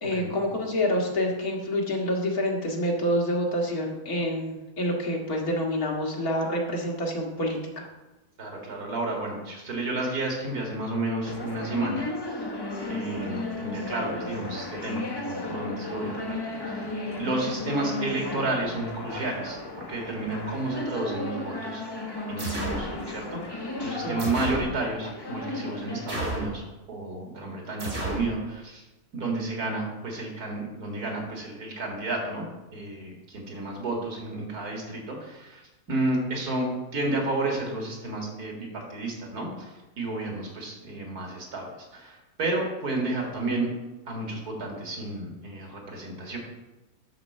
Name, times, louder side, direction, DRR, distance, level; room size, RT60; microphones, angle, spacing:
voice 1, 0.0-7.9 24.0-24.2, equal, 75° left, -1 dB, 2.2 m, -27 dB
voice 2, 8.4-12.1 12.9-19.6 19.9-21.8 22.3-26.6 26.9-28.8 29.1-32.5 32.7-43.7 44.1-46.4, right 2 dB, 90° right, 0 dB, 2.5 m, -31 dB
sound 1, 11.2-26.1, left 2 dB, 25° left, 0.6 m, -34 dB
sound 2, 22.4-22.9 24.2-24.7 26.1-26.6 27.8-28.3, right 1 dB, 65° right, 2.6 m, -31 dB
11.0 x 4.3 x 6.5 m, 1.1 s
omnidirectional pair, 1.6 m